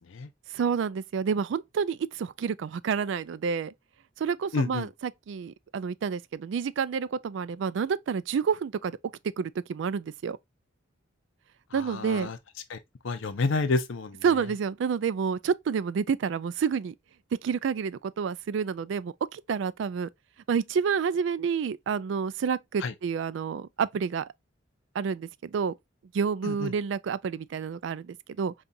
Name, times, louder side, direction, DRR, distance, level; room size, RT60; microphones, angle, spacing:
voice 1, 0.5-3.7 4.2-9.0 9.4-10.4 11.7-12.3 14.2-16.9 17.4-20.1 20.5-24.3 24.9-25.7 26.1-28.5, right 6 dB, 70° right, 0.3 m, -29 dB
voice 2, 4.5-4.9 11.7-12.4 12.7-12.8 13.0-14.2 22.8-22.9 26.4-26.7, left 3 dB, 80° left, 0.6 m, -29 dB
5.3 x 2.4 x 2.6 m
head